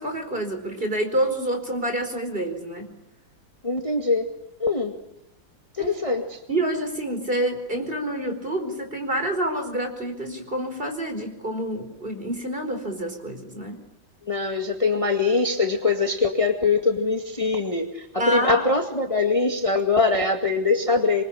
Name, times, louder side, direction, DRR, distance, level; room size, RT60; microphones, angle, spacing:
voice 1, 0.0-2.9 5.8-6.2 6.5-13.8 18.2-18.7, right 1 dB, 25° right, 6 dB, 4.8 m, -28 dB
voice 2, 3.6-4.2 4.6-5.0 5.8-6.4 14.3-21.2, left 3 dB, 15° left, 3 dB, 2.0 m, -22 dB
27.0 x 24.0 x 8.9 m, 0.81 s
omnidirectional pair, 2.1 m